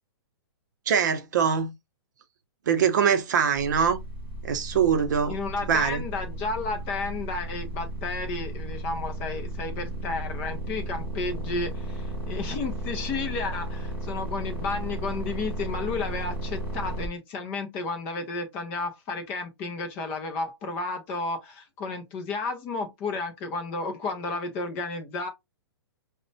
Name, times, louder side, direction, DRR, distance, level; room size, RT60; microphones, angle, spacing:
voice 1, 0.9-1.7 2.7-4.0 4.4-5.4 5.7-6.0, right 7 dB, 45° right, 0.6 m, -23 dB
sound 1, 3.6-17.1, equal, 10° right, 0.8 m, -34 dB
voice 2, 5.3-25.3, left 3 dB, 10° left, 0.3 m, -32 dB
5.1 x 2.1 x 2.6 m
hypercardioid pair, 175°, 14 cm